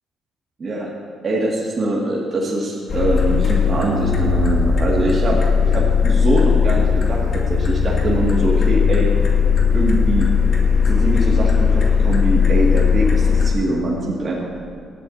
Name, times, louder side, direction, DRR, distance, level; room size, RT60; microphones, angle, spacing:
voice 1, 1.2-5.4 5.7-9.1 9.7-10.3 10.9-14.6, right 2 dB, 40° right, -6 dB, 2.3 m, -23 dB
sound 1, 2.9-13.5, left 6 dB, 55° left, 2.2 m, -17 dB
18.5 x 12.0 x 2.8 m, 2.4 s
cardioid pair, 90°, 0 cm